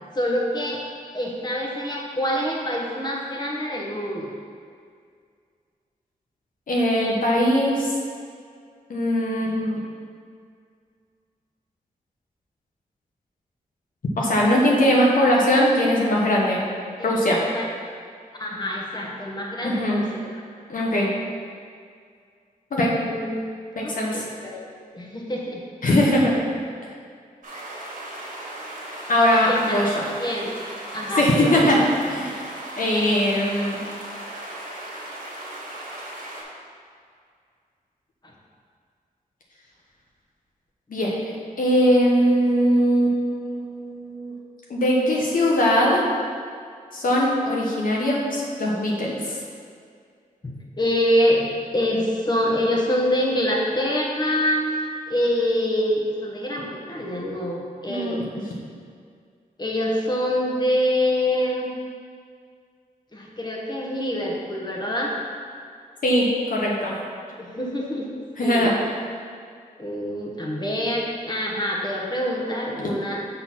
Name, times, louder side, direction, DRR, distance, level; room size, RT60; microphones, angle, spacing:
voice 1, 0.1-0.8 1.1-4.3 17.0-17.6 18.4-20.4 23.1-23.4 23.8-25.6 29.5-29.9 30.2-30.6 30.9-31.8 50.4-54.6 55.1-58.3 59.6-61.7 63.1-65.1 67.4-68.1 68.4-68.7 69.8-73.2, equal, 30° left, -2 dB, 1.2 m, -25 dB
voice 2, 6.7-7.9 8.9-9.8 14.2-16.6 17.0-17.4 19.6-20.0 20.7-21.1 22.7-22.9 23.8-24.2 25.8-26.3 29.1-30.1 31.2-32.3 32.8-33.8 40.9-41.3 41.6-44.3 44.7-46.0 46.9-49.4 57.9-58.1 66.0-66.9 68.4-68.7, equal, 65° left, -3 dB, 1.1 m, -20 dB
sound 1, 27.4-36.4, right 1 dB, 65° right, 1.8 m, -37 dB
6.2 x 3.9 x 5.8 m, 2.2 s
wide cardioid pair, 95°, 15 cm